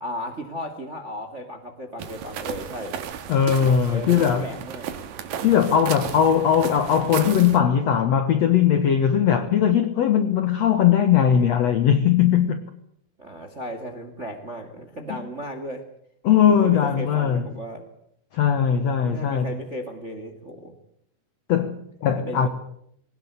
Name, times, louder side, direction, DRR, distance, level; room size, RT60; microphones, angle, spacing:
voice 1, 0.0-3.0 3.9-4.9 13.2-15.8 16.5-17.9 19.0-20.7 22.1-22.5, equal, 30° right, 1.2 m, -35 dB
sound 1, 2.0-7.6, right 9 dB, 65° right, 2.8 m, -34 dB
voice 2, 3.3-4.5 5.4-12.6 16.2-17.5 18.3-19.5 21.5-22.5, left 8 dB, 75° left, 1.5 m, -19 dB
20.5 x 18.5 x 8.2 m
omnidirectional pair, 4.9 m